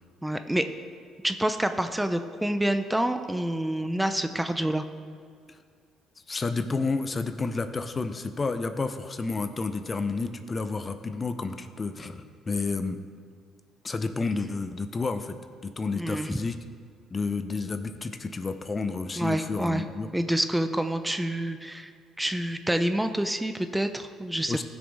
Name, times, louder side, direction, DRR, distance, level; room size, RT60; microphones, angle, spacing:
voice 1, 0.2-0.7 1.2-4.8 15.9-16.4 19.2-19.8 20.1-21.9 22.2-24.6, right 1 dB, 10° right, 9 dB, 0.6 m, -27 dB
voice 2, 6.3-13.0 13.8-15.4 15.6-16.6 17.1-20.1 24.5-24.6, left 4 dB, 35° left, 9 dB, 0.7 m, -30 dB
15.5 x 6.2 x 3.6 m, 2.1 s
hypercardioid pair, 60°, 0 cm